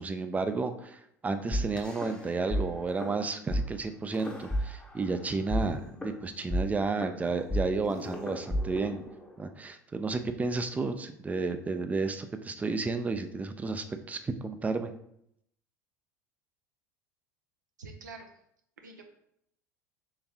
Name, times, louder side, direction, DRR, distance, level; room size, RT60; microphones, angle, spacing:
voice 1, 0.0-9.0 9.4-14.9, right 3 dB, 15° right, 9 dB, 0.4 m, -32 dB
sound 1, 1.5-2.6 2.9-3.1 3.5-3.6 4.1-5.1 5.5-9.5, equal, 10° left, 0.8 m, -32 dB
voice 2, 17.8-18.3 18.8-19.1, right 3 dB, 80° right, 4 dB, 0.6 m, -46 dB
3.8 x 3.4 x 2.8 m, 0.73 s
figure-of-eight pair, 75°, 10 cm